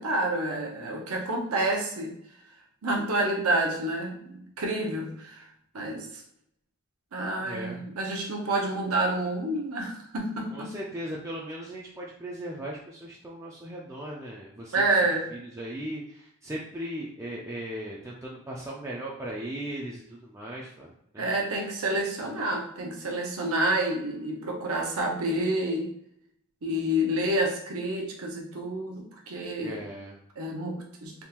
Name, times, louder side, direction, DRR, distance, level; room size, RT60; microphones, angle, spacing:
voice 1, 0.0-2.1 2.8-5.5 5.7-6.2 7.1-10.7 14.7-15.3 21.2-25.9 26.6-29.8 30.4-31.2, right 1 dB, 70° right, 0 dB, 0.7 m, -28 dB
voice 2, 7.4-7.8 10.5-14.7 15.3-21.3 29.6-30.2, right 1 dB, 15° right, -4 dB, 0.4 m, -38 dB
3.5 x 2.4 x 2.9 m, 0.74 s
head